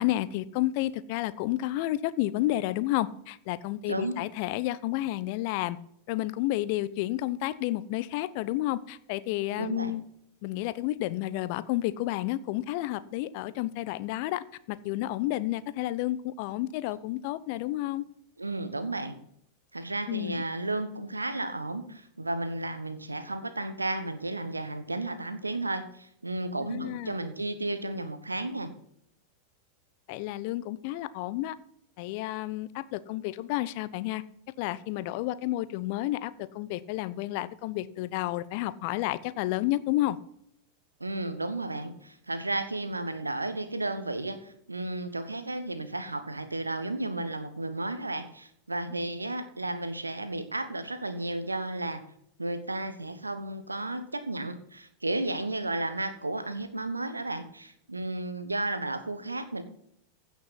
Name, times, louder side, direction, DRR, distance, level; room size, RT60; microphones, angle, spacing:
voice 1, 0.0-5.8 6.1-10.0 10.4-18.1 20.1-20.4 26.6-27.1 30.1-31.6 32.0-34.2 34.6-40.2, left 16 dB, 45° left, 16 dB, 0.7 m, -31 dB
voice 2, 9.6-9.9 18.4-19.2 19.7-28.7 41.0-52.0 52.4-59.6, right 2 dB, 80° right, 11 dB, 1.3 m, -33 dB
15.5 x 6.1 x 5.7 m, 0.71 s
figure-of-eight pair, 90°, 0 cm